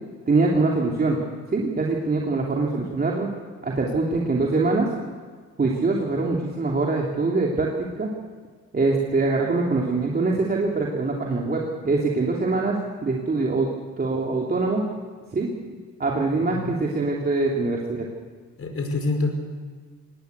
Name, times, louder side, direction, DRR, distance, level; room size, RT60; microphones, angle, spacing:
voice 1, 0.3-1.2 1.5-3.3 3.6-4.9 5.6-8.1 8.7-13.7 14.0-14.8 15.3-15.5 16.0-18.0, right 3 dB, 30° right, -2 dB, 3.0 m, -23 dB
voice 2, 18.6-19.3, left 3 dB, 50° left, 4 dB, 5.0 m, -26 dB
19.5 x 19.0 x 8.2 m, 1.6 s
cardioid pair, 90°, 30 cm